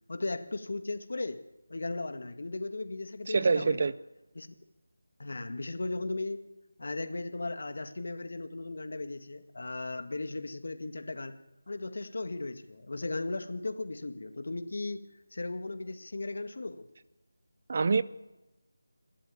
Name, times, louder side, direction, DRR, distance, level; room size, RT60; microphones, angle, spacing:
voice 1, 0.1-1.4 1.7-3.9 4.4-4.5 5.2-6.5 6.8-11.4 11.7-16.9, left 2 dB, 55° left, 2.0 m, -36 dB
voice 2, 3.3-3.9 17.7-18.0, right 4 dB, 35° right, 0.7 m, -25 dB
27.5 x 12.5 x 8.6 m
figure-of-eight pair, 175°, 0 cm